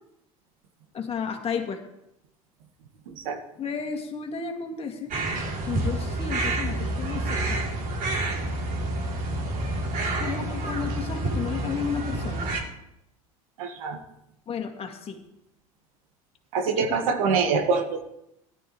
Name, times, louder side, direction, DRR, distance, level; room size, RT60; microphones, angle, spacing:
voice 1, 0.9-1.8 3.6-5.1 5.6-7.7 10.2-12.5 14.5-15.2 16.8-17.1, left 6 dB, 35° left, 4 dB, 2.2 m, -33 dB
sound 1, 5.1-12.6, right 2 dB, 50° right, 3.2 m, -28 dB
voice 2, 13.6-14.0 16.5-18.0, right 5 dB, 75° right, 6 dB, 1.7 m, -24 dB
17.5 x 12.0 x 3.2 m, 0.83 s
hypercardioid pair, 80°, 18 cm